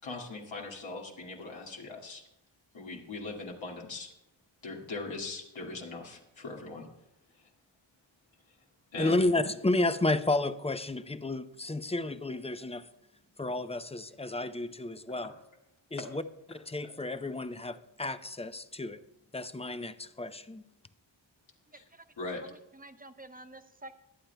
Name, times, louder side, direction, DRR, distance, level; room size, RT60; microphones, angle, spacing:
voice 1, 0.0-2.2 2.7-4.1 4.6-6.9 8.9-9.2 16.0-16.1 16.8-16.9 22.2-22.4, left 3 dB, 75° left, -1 dB, 2.0 m, -40 dB
voice 2, 9.0-12.9 13.4-15.3 15.9-16.2 16.5-19.0 19.3-20.6, left 2 dB, 15° left, 12 dB, 0.5 m, -31 dB
voice 3, 21.7-22.1 22.4-23.9, right 2 dB, 20° right, 8 dB, 0.8 m, -50 dB
22.0 x 8.7 x 2.2 m, 0.86 s
cardioid pair, 70°, 46 cm